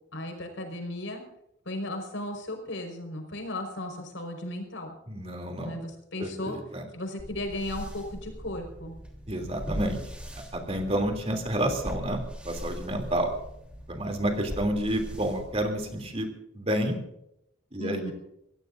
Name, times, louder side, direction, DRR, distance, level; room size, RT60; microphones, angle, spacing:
voice 1, 0.1-1.2 1.7-4.9 5.6-6.6 6.9-9.0 17.8-18.1, left 1 dB, 80° left, 3 dB, 5.2 m, -35 dB
voice 2, 5.1-5.8 6.2-6.8 9.3-10.0 10.5-12.2 12.4-13.3 13.9-16.3 16.5-17.0 17.7-18.1, right 1 dB, 30° right, 4 dB, 3.1 m, -29 dB
sound 1, 7.2-16.1, equal, 5° right, 3.4 m, -40 dB
25.5 x 17.0 x 2.7 m, 0.78 s
head